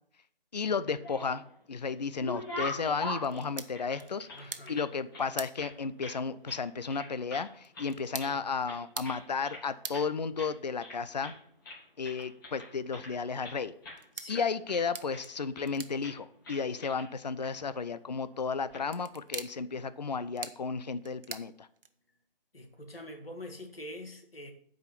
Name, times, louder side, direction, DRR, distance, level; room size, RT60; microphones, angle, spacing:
voice 1, 0.5-1.4 1.7-11.3 12.0-13.7 14.3-21.7, left 5 dB, 45° left, 14 dB, 0.5 m, -33 dB
sound 1, 0.7-1.6 1.9-4.9 5.1-6.2 6.5-6.6 6.9-7.5 7.7-8.4 8.7-9.6 9.9-10.1 10.4-10.5 10.8-11.4 11.6-13.6 13.8-14.0 14.3-15.2 15.5-15.7 16.0-16.2 16.4-17.1 17.4-17.5 18.5-18.8, left 2 dB, 25° left, 2.3 m, -42 dB
sound 2, 3.2-22.3, right 4 dB, 70° right, 1.0 m, -48 dB
voice 2, 4.3-4.8 8.0-8.4 14.1-14.4 22.5-24.5, left 1 dB, 80° left, 4 dB, 2.2 m, -45 dB
9.1 x 5.0 x 7.3 m, 0.62 s
figure-of-eight pair, 160°, 29 cm